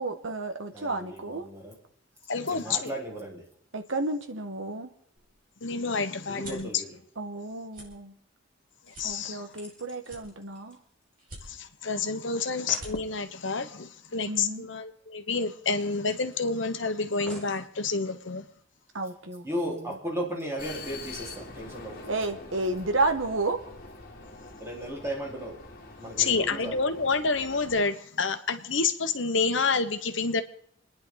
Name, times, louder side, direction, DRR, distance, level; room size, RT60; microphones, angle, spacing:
voice 1, 0.0-1.5 3.7-4.9 7.2-8.1 9.0-10.8 14.3-14.7 18.9-19.8 22.1-23.6, right 2 dB, 75° right, 6 dB, 1.6 m, -31 dB
voice 2, 0.7-1.8 2.5-3.4 6.3-7.0 19.4-22.0 24.6-25.6 26.0-26.8, equal, 15° right, -4 dB, 4.4 m, -35 dB
voice 3, 2.3-2.9 5.6-6.7 9.0-9.4 11.5-18.5 26.2-30.4, left 4 dB, 65° left, 8 dB, 1.2 m, -28 dB
sound 1, 5.1-6.7 7.2-7.4 7.7-7.9 8.4-8.5 8.9-9.7 10.0-10.7 11.2-11.8 12.3-12.4 12.6-12.9, right 2 dB, 45° right, 5.6 m, -46 dB
sound 2, 8.8-11.5 11.8-11.9 12.2-12.3 12.5-13.0 14.5-14.6 14.9-15.0 15.6-16.7 17.3-17.7 18.4-18.5, left 1 dB, 5° left, 5.1 m, -49 dB
Vehicle, 20.6-27.8, left 3 dB, 50° left, 2.0 m, -45 dB
29.0 x 10.5 x 4.0 m, 0.69 s
head